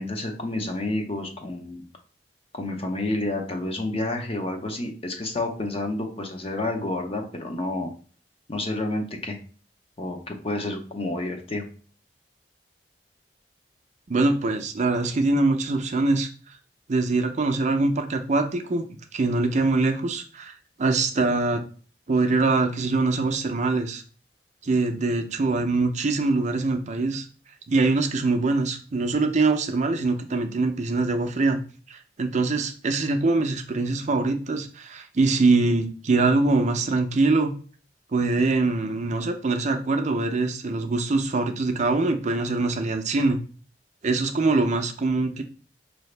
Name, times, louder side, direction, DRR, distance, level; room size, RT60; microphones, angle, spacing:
voice 1, 0.0-1.8 2.5-7.9 8.5-9.4 10.0-11.7, left 2 dB, 35° left, 4 dB, 0.7 m, -29 dB
voice 2, 14.1-16.3 16.9-20.5 20.8-21.6 22.1-24.0 24.6-27.3 27.7-31.6 31.9-37.5 38.1-43.4 44.0-45.4, right 3 dB, 45° right, 6 dB, 0.5 m, -23 dB
4.8 x 2.7 x 3.2 m, 0.40 s
head